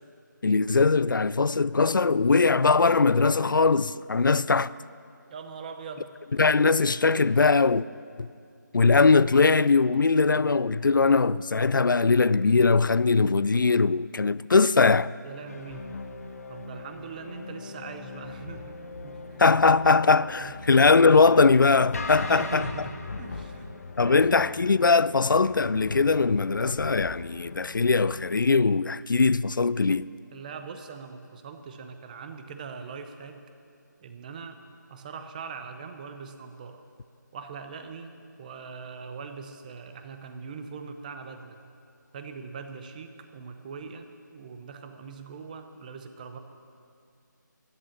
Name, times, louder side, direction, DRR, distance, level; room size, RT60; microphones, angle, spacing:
voice 1, 0.4-4.7 6.4-7.9 8.2-8.3 8.7-15.1 19.4-22.7 24.0-30.1, left 4 dB, 85° left, 0.4 m, -21 dB
voice 2, 5.3-6.2 15.2-15.9 16.5-19.4 20.4-20.7 22.2-24.7 30.3-33.4 34.0-34.6 34.9-36.8 37.3-41.6 42.1-44.1 44.3-46.4, right 5 dB, 25° right, 0.8 m, -41 dB
sound 1, 15.5-28.3, left 3 dB, 50° left, 1.2 m, -40 dB
14.0 x 11.5 x 7.3 m
figure-of-eight pair, 155°, 10 cm